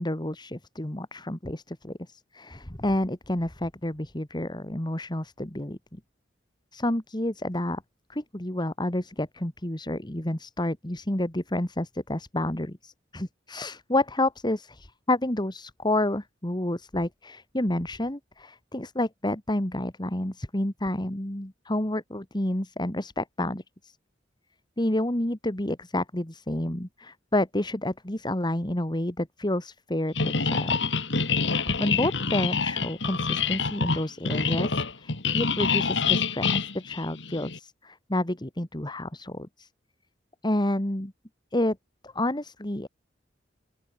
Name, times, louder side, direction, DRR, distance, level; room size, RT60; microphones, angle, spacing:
voice 1, 0.0-6.0 6.7-7.8 8.1-24.0 24.8-30.8 31.3-39.7 40.4-41.1 41.5-41.8 42.0-42.9, left 1 dB, 25° left, 2.2 m, -29 dB
sound 1, 30.2-37.6, left 5 dB, 70° left, 2.7 m, -26 dB
open air
head